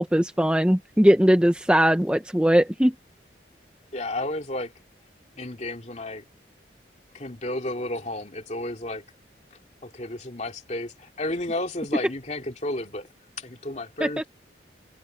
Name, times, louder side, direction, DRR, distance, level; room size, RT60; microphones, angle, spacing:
voice 1, 0.0-2.9 14.0-14.2, equal, 5° right, 0.7 m, -20 dB
voice 2, 3.9-4.7 5.4-6.2 7.1-9.0 9.8-13.1 13.4-14.3, left 1 dB, 40° left, 2.6 m, -32 dB
head